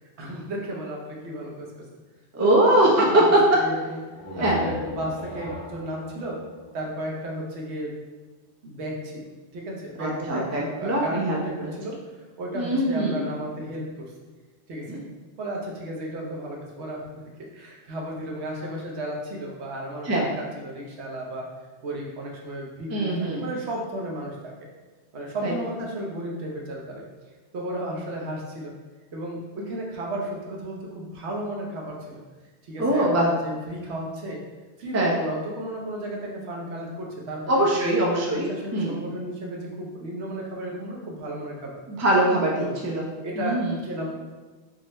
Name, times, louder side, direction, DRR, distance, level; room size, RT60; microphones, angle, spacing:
voice 1, 0.2-1.9 2.4-4.0 4.4-6.4 6.7-7.9 8.6-9.1 9.5-12.0 12.4-14.1 14.7-14.9 15.4-17.0 17.4-21.4 21.8-23.1 23.3-24.5 25.1-27.1 27.5-28.7 29.1-32.2 32.6-34.4 34.8-37.9 38.5-41.7 42.6-42.7 43.2-44.2, right 1 dB, 70° right, -2 dB, 1.0 m, -33 dB
voice 2, 2.3-3.2 4.4-4.6 10.0-11.7 12.5-13.2 14.9-15.0 20.0-20.2 22.9-23.4 25.4-25.5 32.8-33.3 34.9-35.1 37.5-38.5 38.7-39.0 41.9-43.0 43.4-43.7, right 1 dB, 25° right, -3 dB, 0.4 m, -22 dB
sound 1, 4.1-7.7, left 1 dB, 70° left, 1.1 m, -37 dB
3.8 x 2.1 x 4.0 m, 1.3 s
omnidirectional pair, 1.2 m